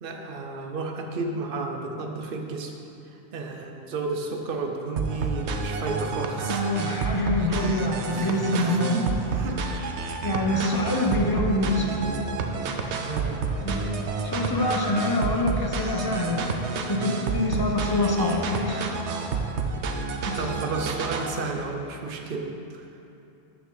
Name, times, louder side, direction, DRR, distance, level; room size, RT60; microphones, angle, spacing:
voice 1, 0.0-2.7 3.3-6.6 7.4-7.8 8.1-9.6 12.9-13.5 20.4-22.9, right 3 dB, 55° right, 2 dB, 1.0 m, -32 dB
sound 1, 5.0-21.4, right 4 dB, 85° right, 1.0 m, -30 dB
voice 2, 6.4-8.9 10.2-12.2 12.8-13.0 13.6-13.8 14.2-16.6 16.9-18.9 20.2-20.5, left 1 dB, 20° left, 0 dB, 0.9 m, -26 dB
13.0 x 5.9 x 4.0 m, 2.7 s
omnidirectional pair, 1.1 m